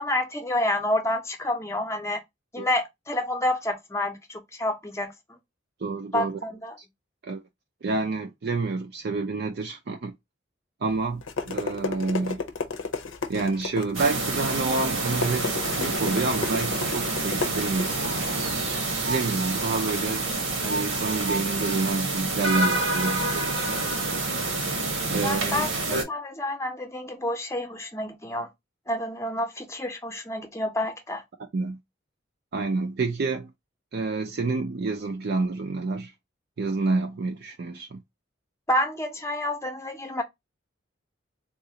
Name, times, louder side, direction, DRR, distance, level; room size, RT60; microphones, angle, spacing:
voice 1, 0.0-2.2 2.5-5.4 6.1-6.8 25.2-28.5 28.9-31.2 38.7-40.2, left 1 dB, 15° left, 0.6 m, -29 dB
voice 2, 5.8-6.4 7.2-7.4 7.8-10.1 10.8-12.4 13.3-18.5 19.1-20.3 20.6-24.0 25.1-25.6 31.5-31.8 32.5-33.5 33.9-36.1 36.6-38.0, right 3 dB, 55° right, 0.4 m, -28 dB
sound 1, 10.9-19.8, left 4 dB, 80° left, 0.7 m, -34 dB
sound 2, 13.9-26.0, right 2 dB, 85° right, 1.3 m, -27 dB
3.8 x 2.4 x 2.7 m
head